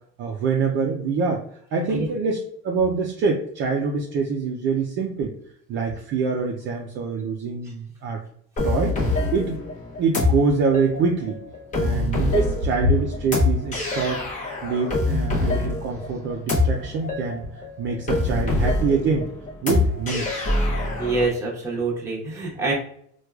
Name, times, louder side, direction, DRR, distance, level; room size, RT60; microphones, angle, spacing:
voice 1, 0.2-1.4 1.7-5.3 5.7-8.2 8.6-9.0 9.3-9.6 10.0-11.4 11.8-14.3 14.6-19.3 19.6-20.5, right 5 dB, 40° right, 0 dB, 0.4 m, -25 dB
sound 1, 8.6-21.3, left 2 dB, 25° left, 0.7 m, -25 dB
voice 2, 21.0-22.7, right 3 dB, 10° right, -4 dB, 0.9 m, -25 dB
4.5 x 2.3 x 2.3 m, 0.64 s
cardioid pair, 165°, 32 cm